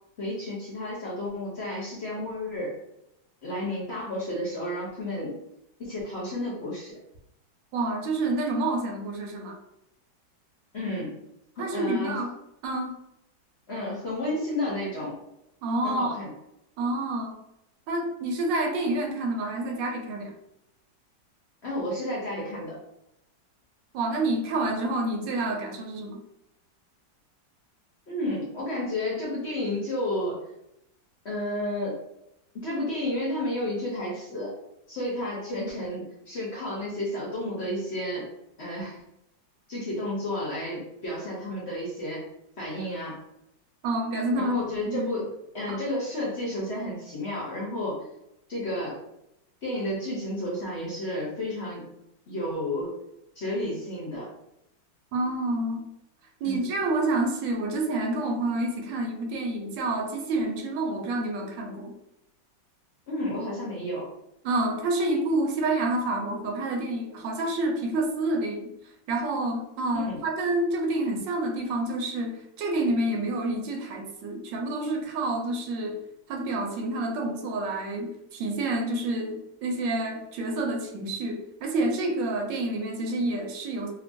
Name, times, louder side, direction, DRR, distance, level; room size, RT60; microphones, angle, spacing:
voice 1, 0.2-2.7 3.4-5.4 5.8-6.9 10.7-11.2 11.6-12.2 13.7-15.2 15.8-16.3 21.6-22.8 28.1-30.4 31.2-32.0 32.5-34.5 34.9-38.3 38.6-39.0 39.7-42.2 42.6-43.2 44.4-45.3 45.5-48.1 48.5-49.0 49.6-52.0 52.3-53.0 53.4-54.3 56.4-56.6 63.1-64.1 69.9-70.2, left 1 dB, 55° left, -5 dB, 0.7 m, -31 dB
voice 2, 7.7-9.6 11.6-12.3 12.6-12.9 15.6-16.1 16.8-17.4 17.9-20.3 23.9-26.2 43.8-44.6 44.9-45.1 45.7-45.8 55.1-55.9 56.4-61.9 64.4-68.7 69.1-76.0 76.3-83.9, right 2 dB, 85° right, 3 dB, 1.3 m, -28 dB
2.9 x 2.5 x 2.5 m, 0.83 s
omnidirectional pair, 1.9 m